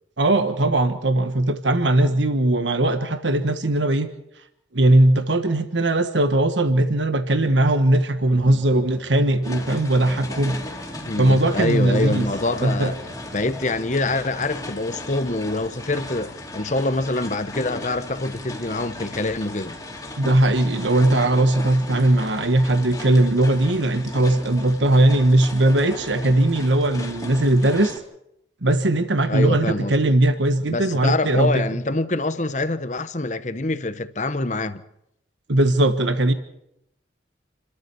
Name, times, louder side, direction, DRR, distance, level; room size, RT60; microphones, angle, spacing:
voice 1, 0.2-4.1 4.7-10.6 11.2-12.2 12.6-12.9 20.2-28.0 28.6-31.6 35.5-36.3, right 1 dB, 70° right, 1.3 m, -19 dB
sound 1, 8.2-13.7, equal, ahead, 1.8 m, -42 dB
sound 2, 9.4-28.0, left 2 dB, 20° left, 2.5 m, -37 dB
voice 2, 11.1-13.0 13.3-19.7 29.3-29.9 30.7-34.8, left 2 dB, 40° left, 1.0 m, -25 dB
29.0 x 13.0 x 7.0 m
head